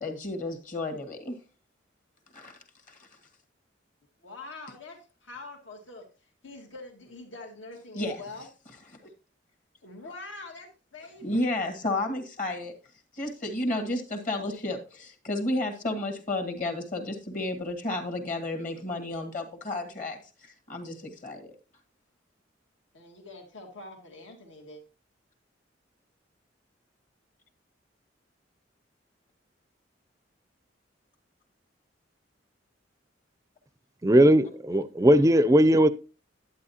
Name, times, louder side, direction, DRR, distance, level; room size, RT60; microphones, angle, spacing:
voice 1, 0.0-1.4 2.3-2.6 2.9-3.0 8.0-8.2 11.2-12.8 13.2-20.2 20.7-21.5, left 2 dB, 45° left, 1.8 m, -32 dB
voice 2, 4.2-6.0 6.4-8.5 9.8-11.4 22.9-24.8, left 2 dB, 80° left, 2.1 m, -44 dB
voice 3, 34.0-35.9, equal, 15° right, 0.4 m, -19 dB
11.0 x 8.5 x 2.8 m
head